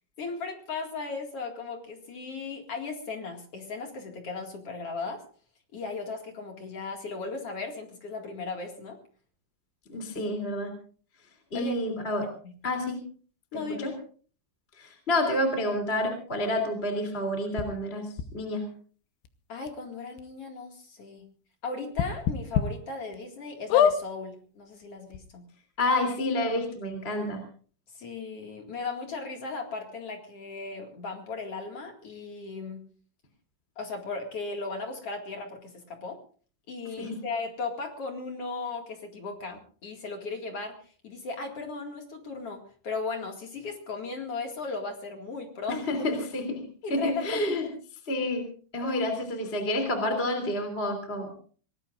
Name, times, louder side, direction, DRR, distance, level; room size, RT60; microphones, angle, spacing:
voice 1, 0.2-5.2 5.7-9.0 11.5-11.8 12.4-12.5 13.5-13.9 19.5-21.3 21.6-25.4 27.9-32.8 33.8-36.2 36.7-45.8 46.8-47.8 48.8-48.9, left 4 dB, 45° left, 3 dB, 2.2 m, -36 dB
voice 2, 9.9-10.7 11.5-12.3 12.6-13.0 13.5-13.9 14.8-18.1 18.3-18.6 25.8-27.4 37.0-37.2 45.9-46.6 46.9-47.6 48.1-48.4 48.7-51.4, left 1 dB, 15° left, 5 dB, 2.4 m, -29 dB
sound 1, 17.6-17.7 18.2-18.3 19.2-19.3 19.7-19.8 20.2-20.3 21.9-22.6 23.1-23.2 23.7-24.0 24.8-24.9 25.1-25.2, left 8 dB, 80° left, 3.3 m, -23 dB
25.0 x 19.0 x 2.5 m, 0.42 s
omnidirectional pair, 5.4 m